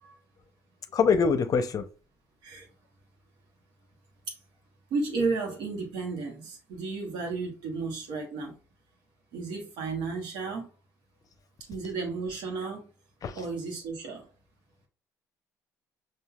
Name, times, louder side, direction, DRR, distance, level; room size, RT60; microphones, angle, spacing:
voice 1, 0.9-1.9 13.2-13.4, left 5 dB, 50° left, 0.6 m, -24 dB
voice 2, 4.9-8.6 9.3-10.7 11.7-12.9 13.3-14.3, right 4 dB, 70° right, 1.3 m, -33 dB
5.4 x 2.6 x 2.3 m
hypercardioid pair, 60°, 8 cm